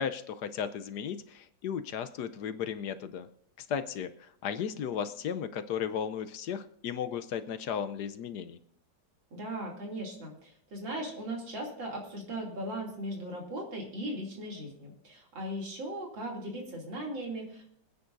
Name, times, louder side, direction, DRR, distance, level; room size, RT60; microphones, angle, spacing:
voice 1, 0.0-3.3 3.6-8.6, left 8 dB, 70° left, 11 dB, 1.2 m, -35 dB
voice 2, 9.3-17.7, right 1 dB, 85° right, -1 dB, 3.6 m, -38 dB
25.5 x 9.6 x 2.6 m, 0.66 s
omnidirectional pair, 2.0 m